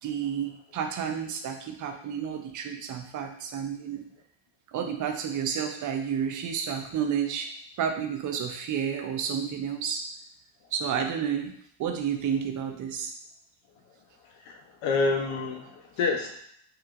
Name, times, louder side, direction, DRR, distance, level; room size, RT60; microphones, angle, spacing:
voice 1, 0.0-4.0 4.7-7.5 7.8-10.0 10.7-13.1, right 7 dB, 40° right, 4 dB, 0.5 m, -31 dB
voice 2, 14.4-16.4, left 3 dB, 80° left, 3 dB, 0.7 m, -28 dB
3.2 x 2.9 x 2.4 m, 0.66 s
cardioid pair, 110°, 45 cm